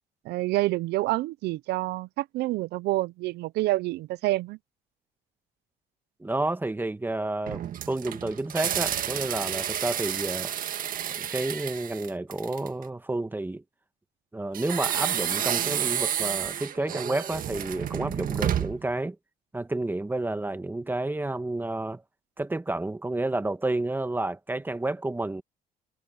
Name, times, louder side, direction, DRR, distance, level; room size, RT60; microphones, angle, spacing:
voice 1, 0.2-4.6, right 18 dB, 80° right, 0.5 m, -28 dB
voice 2, 6.2-10.5 11.2-13.6 14.3-19.2 19.5-22.0 22.4-25.4, right 2 dB, 10° right, 1.4 m, -30 dB
sound 1, 7.5-12.8 14.5-18.9, right 10 dB, 55° right, 1.7 m, -30 dB
cardioid pair, 110°, 17 cm